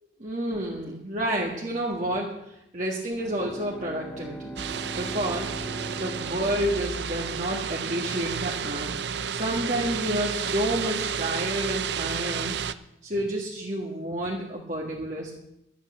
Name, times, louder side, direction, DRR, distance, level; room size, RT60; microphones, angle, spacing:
voice 1, 0.2-2.3 2.7-4.6 5.0-5.6 6.0-9.0 9.3-12.5 13.0-15.3, right 1 dB, 40° right, -2 dB, 1.7 m, -30 dB
Bowed string instrument, 3.0-7.8, right 1 dB, 10° left, 0.6 m, -41 dB
sound 1, 4.6-12.7, right 7 dB, 60° right, 0.5 m, -31 dB
12.5 x 8.4 x 8.5 m, 0.82 s
head